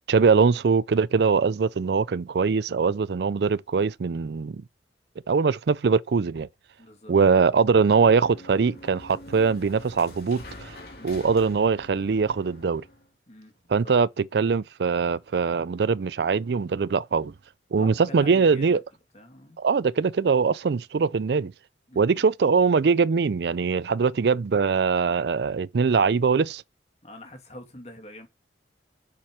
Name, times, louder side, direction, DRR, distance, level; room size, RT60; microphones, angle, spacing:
voice 1, 0.1-4.6 5.3-6.5 7.1-10.7 11.0-12.8 13.7-17.3 17.7-18.8 19.6-21.5 22.0-26.6, right 5 dB, 65° right, 0.4 m, -22 dB
voice 2, 6.8-7.1 11.0-11.2 13.3-13.5 13.8-13.9 17.7-18.8 19.1-19.6 21.9-22.2 27.0-28.3, left 1 dB, 40° left, 2.7 m, -44 dB
sound 1, 7.5-13.1, left 1 dB, 60° left, 3.2 m, -46 dB
7.4 x 7.4 x 5.0 m
head